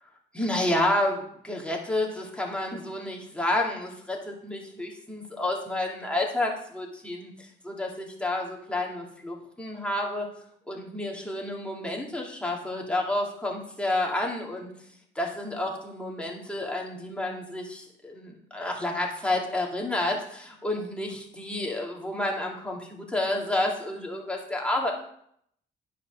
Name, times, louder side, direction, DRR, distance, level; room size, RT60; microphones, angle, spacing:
voice 1, 0.3-10.3 10.7-14.7 15.1-24.9, left 1 dB, 5° left, -2 dB, 2.6 m, -30 dB
9.5 x 5.6 x 6.4 m, 0.68 s
cardioid pair, 90°, 20 cm